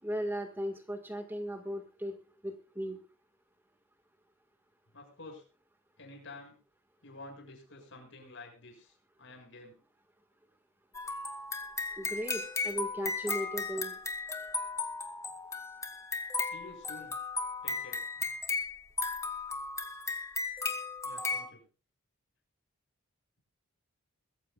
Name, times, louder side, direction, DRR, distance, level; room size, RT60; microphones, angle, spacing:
voice 1, 0.0-3.0 11.9-14.0, equal, 10° right, 6 dB, 1.7 m, -37 dB
voice 2, 4.9-5.4 6.0-6.6 7.0-9.8 16.4-17.2 17.6-18.3 21.0-21.6, left 2 dB, 60° left, 2 dB, 6.8 m, -50 dB
sound 1, 10.9-21.5, left 4 dB, 15° left, 1.9 m, -36 dB
22.5 x 15.0 x 2.4 m, 0.36 s
head